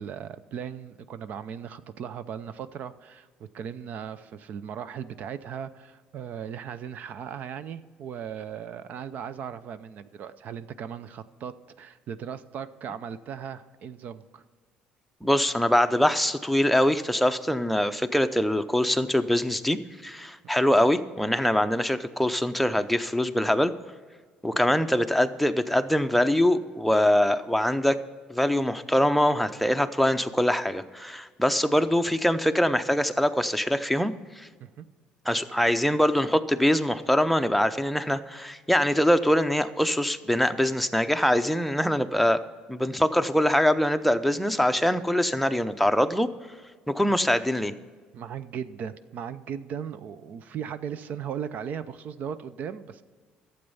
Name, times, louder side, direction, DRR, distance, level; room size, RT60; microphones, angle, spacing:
voice 1, 0.0-14.4 20.6-20.7 34.6-34.9 47.1-47.2 48.1-53.0, right 8 dB, 55° right, 14 dB, 0.6 m, -37 dB
voice 2, 15.2-23.7 24.4-28.0 28.3-34.5 35.3-42.4 42.7-46.3 46.9-47.7, left 1 dB, ahead, 8 dB, 0.6 m, -23 dB
12.0 x 8.0 x 5.5 m, 1.5 s
cardioid pair, 100°, 3 cm